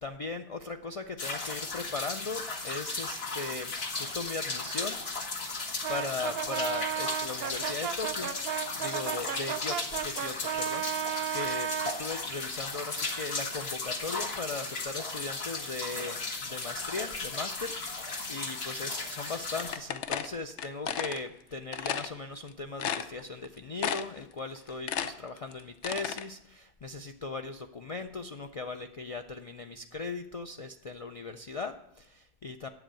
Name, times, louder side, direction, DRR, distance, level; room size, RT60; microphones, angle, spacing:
voice 1, 0.0-5.0 5.9-32.7, left 3 dB, 45° left, 6 dB, 0.4 m, -38 dB
sound 1, 1.2-19.7, left 3 dB, 65° left, 1.6 m, -36 dB
Brass instrument, 5.8-12.0, right 10 dB, 65° right, 0.8 m, -34 dB
sound 2, 19.6-21.2 21.7-22.1 22.5-22.6 22.8-23.5 23.8-24.2 24.6-26.2, left 8 dB, 90° left, 1.0 m, -33 dB
8.0 x 7.9 x 8.7 m, 0.80 s
omnidirectional pair, 1.2 m